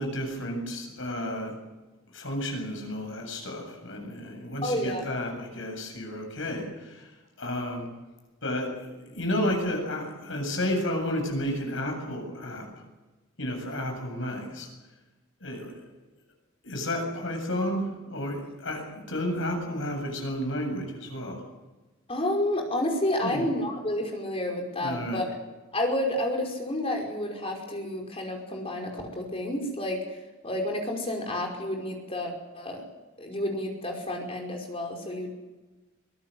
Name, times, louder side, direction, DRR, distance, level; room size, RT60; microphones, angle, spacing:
voice 1, 0.0-1.6 2.1-7.1 7.4-7.9 8.4-12.7 13.4-14.7 15.4-15.9 16.6-21.4 23.2-23.4 24.8-25.2, left 1 dB, 65° left, 3 dB, 7.7 m, -32 dB
voice 2, 4.6-5.0 22.1-25.3 25.7-30.0 30.4-32.8 33.2-35.3, left 1 dB, 30° left, 2 dB, 5.3 m, -30 dB
24.0 x 19.0 x 7.9 m, 1.2 s
head